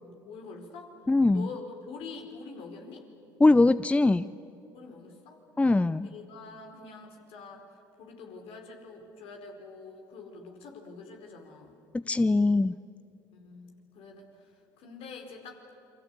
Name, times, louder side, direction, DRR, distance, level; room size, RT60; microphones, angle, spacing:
voice 1, 0.2-1.0 1.3-3.1 4.7-5.4 6.0-7.6 8.0-11.8 13.3-15.6, left 4 dB, 60° left, 3 dB, 4.6 m, -45 dB
voice 2, 1.1-1.5 3.4-4.3 5.6-6.1 11.9-12.7, left 2 dB, 10° left, 16 dB, 0.6 m, -22 dB
28.5 x 24.5 x 8.5 m, 2.9 s
hypercardioid pair, 60°, 11 cm